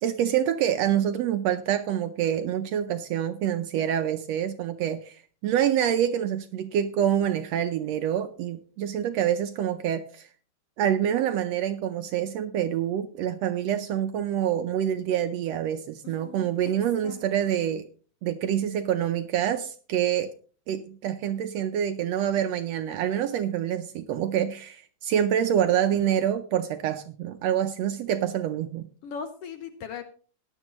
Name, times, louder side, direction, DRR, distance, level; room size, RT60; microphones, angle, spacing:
voice 1, 0.0-10.3 10.8-17.9 18.2-20.3 20.7-28.9, right 10 dB, 75° right, 9 dB, 1.6 m, -26 dB
voice 2, 16.0-16.5 17.0-17.2 25.9-26.2 29.0-30.0, left 6 dB, 70° left, 8 dB, 1.5 m, -39 dB
16.5 x 10.5 x 3.0 m, 0.40 s
omnidirectional pair, 3.5 m